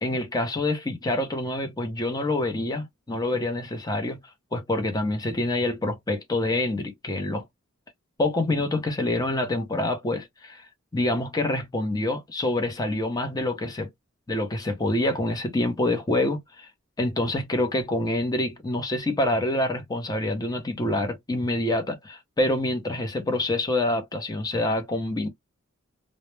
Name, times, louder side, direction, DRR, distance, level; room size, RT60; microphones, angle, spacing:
voice 1, 0.0-4.2 4.5-7.5 8.2-10.7 10.9-13.9 14.3-16.7 17.0-25.3, left 1 dB, 20° left, 0.6 m, -26 dB
2.0 x 2.0 x 3.1 m
head